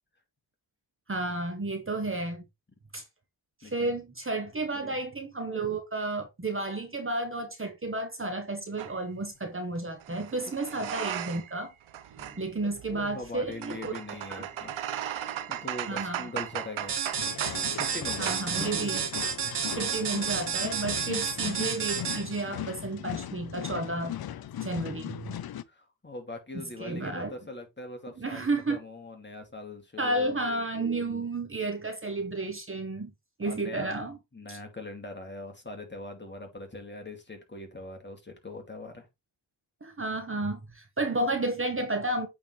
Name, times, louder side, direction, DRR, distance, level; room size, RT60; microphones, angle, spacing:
voice 1, 1.1-2.4 2.9-3.0 3.6-11.7 12.4-13.9 14.3-14.4 15.9-16.3 18.2-19.1 19.8-24.2 24.6-25.3 26.8-27.3 28.2-28.8 30.0-33.1 33.4-34.2 34.5-34.6 39.8-42.3, right 2 dB, 25° right, 1.4 m, -32 dB
voice 2, 3.6-4.0 4.7-5.1 10.8-11.0 12.2-14.8 15.0-17.0 17.7-18.7 19.5-19.7 24.6-25.0 25.7-30.4 33.4-34.0 34.3-39.1, left 2 dB, 25° left, 2.6 m, -42 dB
sound 1, 8.8-9.0 10.0-11.6 11.9-18.0 18.3-18.5, right 11 dB, 90° right, 0.9 m, -36 dB
sound 2, 16.9-22.4, right 7 dB, 60° right, 1.9 m, -31 dB
sound 3, 17.2-25.6, left 11 dB, 55° left, 0.6 m, -38 dB
8.6 x 4.2 x 3.3 m
cardioid pair, 70°, 46 cm